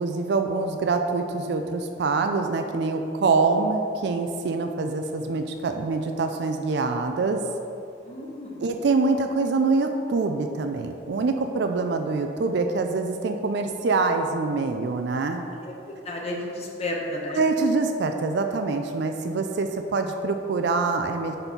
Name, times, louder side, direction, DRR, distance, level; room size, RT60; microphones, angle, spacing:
voice 1, 0.0-7.4 8.6-15.4 17.3-21.4, right 3 dB, 60° right, 5 dB, 0.4 m, -25 dB
voice 2, 8.1-8.6 15.3-17.4, left 1 dB, 35° left, -2 dB, 0.8 m, -33 dB
5.2 x 4.3 x 5.9 m, 2.7 s
head